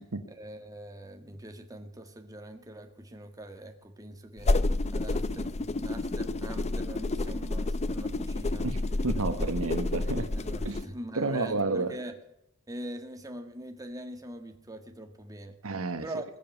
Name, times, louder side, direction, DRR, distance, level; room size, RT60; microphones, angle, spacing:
voice 1, 0.3-4.5 4.9-8.7 9.2-9.5 10.3-12.2 12.7-15.6 16.0-16.2, right 1 dB, 15° right, 5 dB, 1.8 m, -43 dB
sound 1, 4.4-10.9, left 2 dB, 30° left, 0.6 m, -30 dB
voice 2, 9.0-10.3 10.6-10.8 11.1-11.9 15.6-16.0, right 3 dB, 70° right, 9 dB, 1.3 m, -30 dB
21.5 x 7.2 x 9.2 m, 0.80 s
head